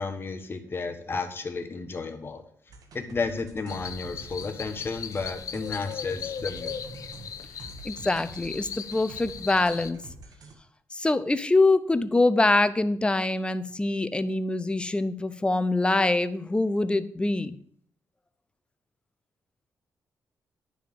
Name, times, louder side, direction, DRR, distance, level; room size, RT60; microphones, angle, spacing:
voice 1, 0.0-2.4 2.9-6.7, left 4 dB, 35° left, 6 dB, 1.2 m, -32 dB
sound 1, 2.7-10.5, right 2 dB, 75° right, 1.4 m, -47 dB
sound 2, 3.7-9.9, left 7 dB, 65° left, 0.5 m, -38 dB
voice 2, 7.8-10.0 10.9-17.6, left 2 dB, 15° left, 14 dB, 0.6 m, -24 dB
10.0 x 3.6 x 6.6 m, 0.63 s
cardioid pair, 90°, 6 cm